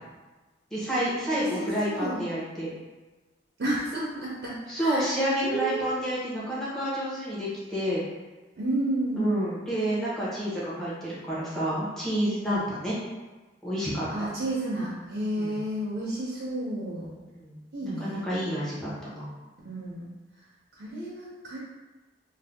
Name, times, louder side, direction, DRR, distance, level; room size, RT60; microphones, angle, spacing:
voice 1, 0.7-2.7 4.7-8.0 9.2-12.9 13.6-14.1 15.3-15.6 17.3-19.3, equal, 5° left, -9 dB, 0.9 m, -29 dB
voice 2, 1.3-2.2 3.6-6.0 8.6-9.5 14.1-17.1 17.7-18.2 19.6-20.1 20.8-21.6, right 1 dB, 65° right, -6 dB, 0.7 m, -31 dB
2.6 x 2.2 x 3.4 m, 1.2 s
head